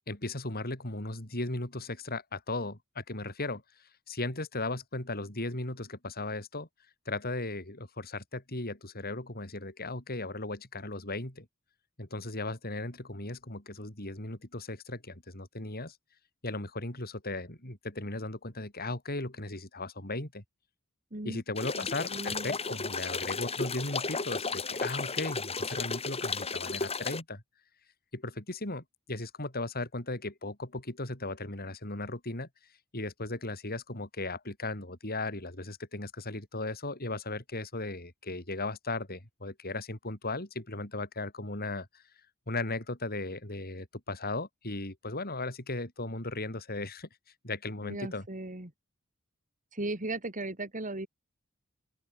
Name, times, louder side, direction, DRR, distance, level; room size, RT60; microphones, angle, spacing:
voice 1, 0.1-3.6 4.1-6.7 7.1-11.5 12.0-16.0 16.4-20.4 21.2-27.4 28.1-32.5 32.9-42.0 42.5-47.1 47.4-48.2, left 2 dB, 45° left, 5.8 m, -37 dB
voice 2, 21.1-21.4 21.8-22.6 47.8-48.7 49.7-51.1, right 2 dB, 40° right, 3.1 m, -37 dB
sound 1, 21.6-27.2, left 4 dB, 30° left, 3.7 m, -34 dB
open air
head